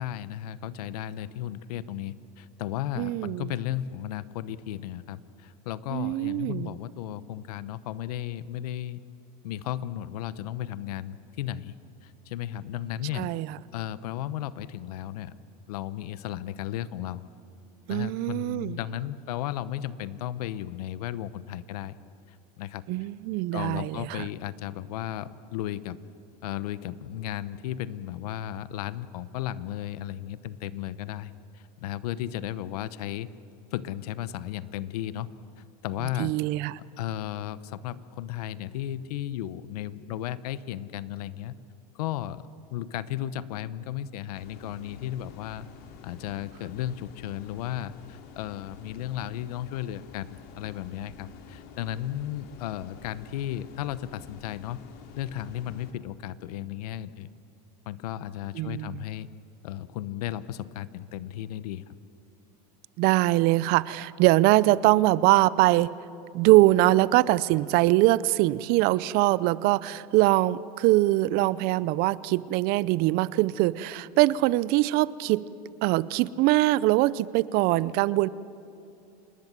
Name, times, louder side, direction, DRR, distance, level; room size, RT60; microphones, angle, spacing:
voice 1, 0.0-9.0 9.4-11.7 12.0-13.3 13.7-15.3 15.7-17.2 17.9-21.9 22.3-22.8 23.5-26.0 26.4-33.3 33.7-35.3 35.8-36.3 37.0-41.6 41.9-45.7 46.0-54.8 55.2-57.3 57.9-59.3 59.6-61.8, left 12 dB, 85° left, 16 dB, 0.9 m, -34 dB
voice 2, 3.0-3.5 5.9-6.7 13.2-13.5 17.9-18.8 22.9-24.2 36.2-36.8 58.5-59.0 63.0-65.9 66.3-75.4 75.8-78.3, right 18 dB, 55° right, 20 dB, 0.6 m, -23 dB
sound 1, 44.3-55.9, left 6 dB, 55° left, 2.9 m, -48 dB
27.0 x 20.0 x 7.6 m, 2.7 s
supercardioid pair, 130°, 19 cm